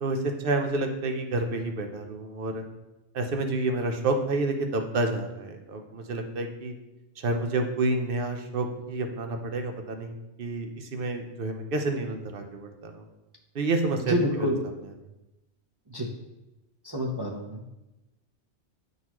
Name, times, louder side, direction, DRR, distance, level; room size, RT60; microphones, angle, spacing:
voice 1, 0.0-2.6 3.1-6.7 7.2-13.0 13.5-14.1, right 2 dB, 55° right, 5 dB, 0.9 m, -29 dB
voice 2, 14.1-14.6 15.9-16.1 16.8-17.6, equal, 30° right, -1 dB, 0.5 m, -28 dB
9.4 x 4.0 x 3.0 m, 0.98 s
omnidirectional pair, 1.2 m